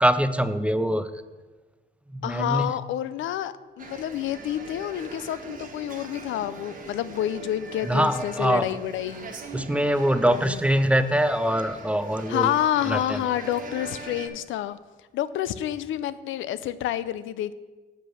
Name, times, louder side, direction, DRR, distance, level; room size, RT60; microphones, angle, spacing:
voice 1, 0.0-1.1 2.1-2.8 7.8-8.7 9.5-12.5 12.9-13.2, equal, 5° right, 11 dB, 0.4 m, -23 dB
voice 2, 2.2-9.3 10.3-10.6 12.3-14.8 15.1-17.5, left 11 dB, 80° left, 15 dB, 0.5 m, -28 dB
sound 1, 3.8-14.3, right 3 dB, 40° right, 1.3 m, -42 dB
7.7 x 5.0 x 6.4 m, 1.3 s
cardioid pair, 90°, 20 cm